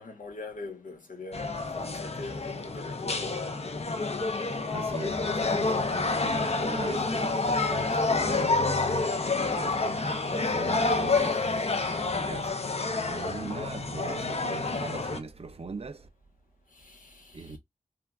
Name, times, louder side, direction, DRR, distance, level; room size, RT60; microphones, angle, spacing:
voice 1, 0.0-3.4 9.1-9.5 12.9-13.2 16.7-17.6, left 3 dB, 85° left, 1.0 m, -43 dB
sound 1, 1.3-15.2, left 3 dB, 50° left, 0.6 m, -28 dB
voice 2, 4.7-8.9 9.3-11.4 12.1-12.5 13.1-16.1 17.3-17.6, right 4 dB, 50° right, 0.6 m, -40 dB
3.4 x 2.2 x 2.3 m
cardioid pair, 40°, 13 cm